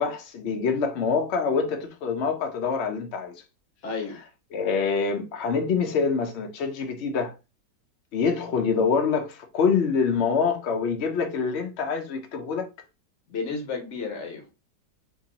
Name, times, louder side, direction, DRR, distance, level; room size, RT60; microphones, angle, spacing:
voice 1, 0.0-3.3 4.5-7.3 8.1-12.7, left 5 dB, 70° left, 0.6 m, -25 dB
voice 2, 3.8-4.2 13.3-14.5, left 4 dB, 50° left, 1.1 m, -32 dB
2.9 x 2.8 x 3.8 m
omnidirectional pair, 1.9 m